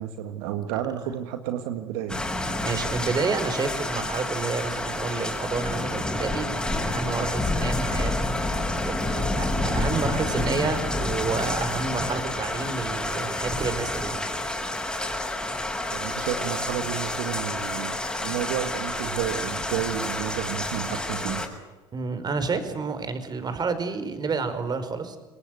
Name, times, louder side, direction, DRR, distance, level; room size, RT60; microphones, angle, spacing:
voice 1, 0.0-2.2 15.9-21.5, right 11 dB, 80° right, 8 dB, 1.8 m, -31 dB
sound 1, 2.1-21.5, left 2 dB, 5° left, 6.4 m, -29 dB
voice 2, 2.6-8.1 8.8-14.2 21.9-25.2, right 4 dB, 35° right, 10 dB, 4.9 m, -29 dB
27.0 x 20.5 x 7.8 m, 1.2 s
hypercardioid pair, 75°, 12 cm